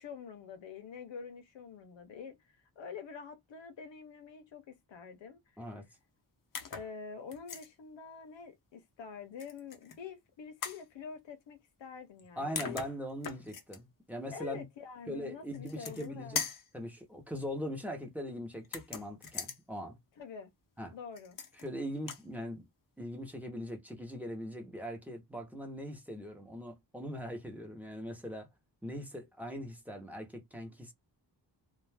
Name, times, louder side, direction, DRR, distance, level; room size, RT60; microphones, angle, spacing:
voice 1, 0.0-5.8 6.7-12.8 14.3-16.4 20.2-20.5 20.9-21.4, left 6 dB, 85° left, 0.7 m, -46 dB
sound 1, 6.5-6.9 7.3-7.7 9.4-10.0 10.6-10.8 12.2-12.3 12.6-13.8 15.5-16.1 16.4-16.7 18.6-19.6 21.2-21.7 22.0-22.3, left 6 dB, 50° left, 0.6 m, -40 dB
voice 2, 12.4-14.6 15.1-16.4 16.7-20.0 20.8-21.0 21.6-22.7 23.0-28.5 28.8-30.9, equal, 5° right, 0.7 m, -41 dB
2.4 x 2.2 x 3.3 m
wide cardioid pair, 175°, 43 cm